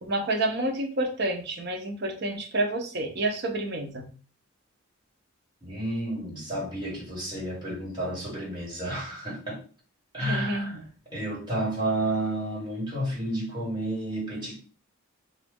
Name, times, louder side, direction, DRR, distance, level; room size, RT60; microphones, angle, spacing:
voice 1, 0.0-4.1 10.2-10.8, right 1 dB, 50° right, 0.7 m, -29 dB
voice 2, 5.6-9.6 10.1-10.8 11.1-14.6, right 1 dB, 20° right, 1.5 m, -31 dB
3.0 x 2.5 x 3.5 m
head